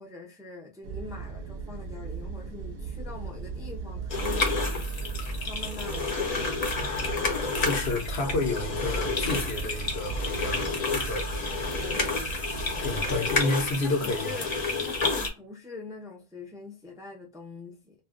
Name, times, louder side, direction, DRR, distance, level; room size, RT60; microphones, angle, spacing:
voice 1, 0.0-4.7 5.3-6.5 7.2-7.9 11.7-12.1 13.3-13.4 13.8-14.5 14.8-17.9, left 3 dB, 5° right, 0.5 m, -43 dB
sound 1, 0.8-13.4, right 4 dB, 70° right, 0.7 m, -37 dB
sound 2, 4.1-15.3, left 3 dB, 45° left, 0.7 m, -30 dB
voice 2, 7.6-11.3 12.8-14.4, left 2 dB, 75° left, 0.9 m, -30 dB
2.4 x 2.2 x 3.6 m
omnidirectional pair, 1.1 m